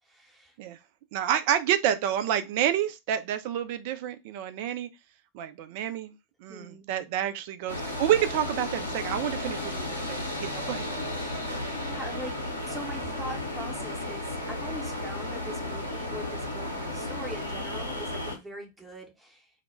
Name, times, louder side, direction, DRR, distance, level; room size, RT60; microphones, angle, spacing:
voice 1, 0.0-0.6 6.5-6.9 11.2-11.5 11.8-19.5, equal, 5° right, 0.7 m, -42 dB
voice 2, 1.1-4.9 5.3-6.1 6.4-11.0, right 10 dB, 50° right, 0.3 m, -29 dB
sound 1, 7.7-18.4, left 1 dB, 90° right, 0.7 m, -34 dB
2.1 x 2.1 x 3.1 m
figure-of-eight pair, 90°, 0 cm